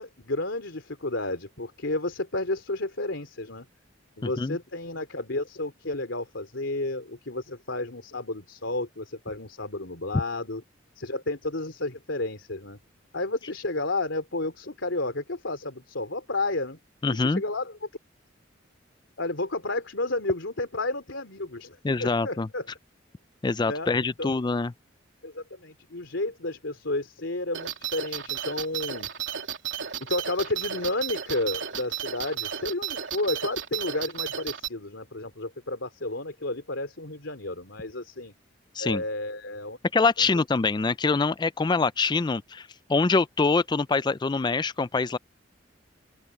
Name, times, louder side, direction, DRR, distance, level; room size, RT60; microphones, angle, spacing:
voice 1, 0.0-3.7 4.2-10.6 10.9-12.8 13.1-16.8 17.0-17.8 19.2-22.7 23.7-24.4 25.2-29.1 30.0-38.3 38.8-39.8 40.2-40.3, left 2 dB, 85° left, 3.1 m, -31 dB
voice 2, 17.0-17.4 21.8-22.5 23.4-24.7 38.8-39.0 39.9-45.2, left 4 dB, 25° left, 0.4 m, -24 dB
sound 1, 27.5-34.7, right 9 dB, 75° right, 3.1 m, -33 dB
open air
head